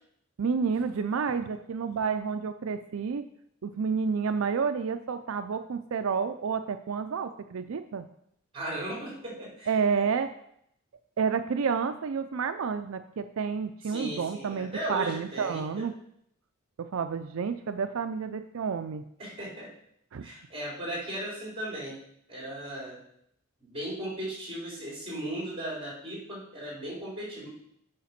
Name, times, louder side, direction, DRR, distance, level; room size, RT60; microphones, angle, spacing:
voice 1, 0.4-3.2 3.6-8.1 9.7-10.3 11.2-15.9 16.8-19.0 20.1-20.3, right 6 dB, 85° right, 9 dB, 0.4 m, -30 dB
voice 2, 8.5-9.7 13.9-15.8 19.2-19.7 20.2-22.0 22.3-23.0 23.6-27.5, right 1 dB, 25° right, -4 dB, 4.0 m, -37 dB
8.6 x 5.0 x 5.8 m, 0.72 s
head